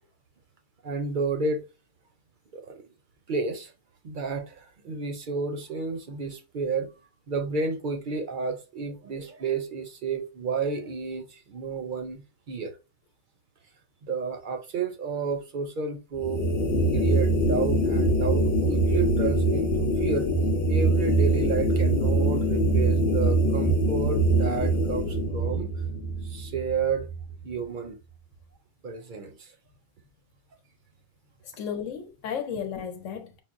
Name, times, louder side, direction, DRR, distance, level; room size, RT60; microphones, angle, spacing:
voice 1, 0.8-1.6 2.5-2.8 3.3-3.7 4.0-6.9 7.3-12.8 14.0-16.4 16.9-20.3 20.7-25.7 26.2-27.1 27.4-28.0 28.8-29.5, right 4 dB, 55° right, 0.6 m, -31 dB
sound 1, 16.2-27.5, right 1 dB, 50° left, 0.9 m, -24 dB
voice 2, 31.4-33.4, left 7 dB, 85° left, 1.1 m, -34 dB
5.6 x 2.0 x 2.4 m
omnidirectional pair, 1.3 m